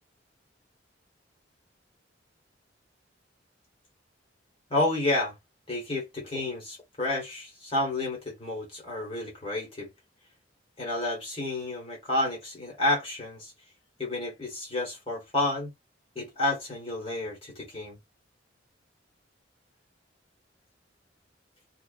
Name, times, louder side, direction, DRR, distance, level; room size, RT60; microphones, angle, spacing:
voice 1, 4.7-5.4 5.7-9.9 10.8-13.5 14.0-15.7 16.1-18.0, left 2 dB, 30° left, 1.1 m, -30 dB
2.4 x 2.3 x 2.4 m
head